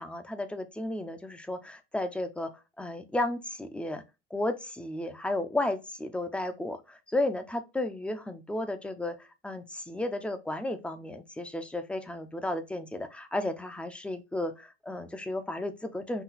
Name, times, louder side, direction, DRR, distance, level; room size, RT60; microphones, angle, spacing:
voice 1, 0.0-2.5 2.8-4.0 4.3-16.2, left 1 dB, 5° left, 0.5 m, -33 dB
5.8 x 2.2 x 4.0 m
cardioid pair, 140°, 33 cm